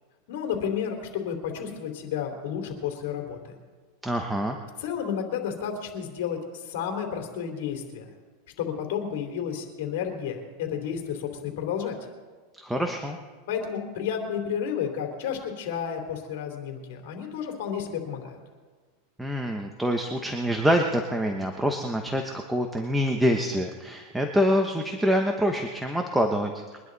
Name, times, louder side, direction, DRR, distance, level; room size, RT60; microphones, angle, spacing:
voice 1, 0.3-3.5 4.8-8.0 8.6-12.0 13.5-18.4, left 8 dB, 70° left, 3 dB, 3.4 m, -31 dB
voice 2, 4.0-4.6 12.6-13.2 19.2-26.8, equal, 5° right, 3 dB, 1.1 m, -26 dB
23.0 x 11.0 x 4.1 m, 1.4 s
supercardioid pair, 130°, 0 cm